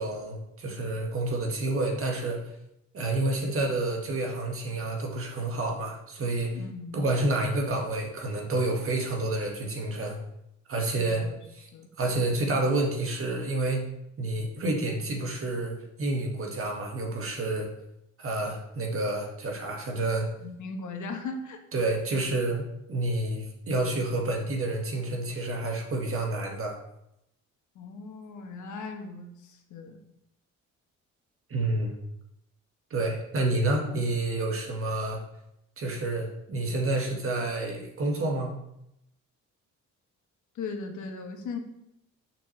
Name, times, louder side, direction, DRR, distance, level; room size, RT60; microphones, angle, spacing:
voice 1, 0.0-2.4 2.9-6.6 6.9-10.2 10.7-11.2 11.6-11.7 12.0-17.7 18.2-20.3 21.7-26.8 31.5-32.0 32.9-35.2 35.8-38.5, right 2 dB, 45° right, 1 dB, 1.7 m, -29 dB
voice 2, 6.5-7.0 11.0-11.4 11.7-11.9 20.4-21.6 27.7-30.0 40.5-41.6, left 4 dB, 75° left, 4 dB, 1.2 m, -38 dB
6.8 x 5.9 x 3.3 m, 0.81 s
cardioid pair, 90°, 30 cm